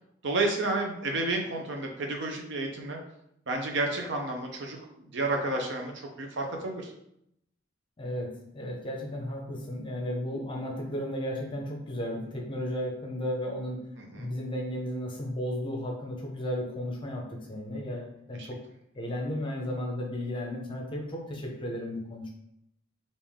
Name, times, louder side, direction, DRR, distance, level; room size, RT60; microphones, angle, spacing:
voice 1, 0.2-3.0 3.5-5.9 6.2-6.9 14.0-14.3 18.4-18.5, right 2 dB, 60° right, 2 dB, 0.6 m, -31 dB
voice 2, 8.0-13.9 14.2-18.6 18.9-22.3, equal, 25° left, 0 dB, 0.7 m, -34 dB
3.5 x 2.6 x 3.5 m, 0.76 s
head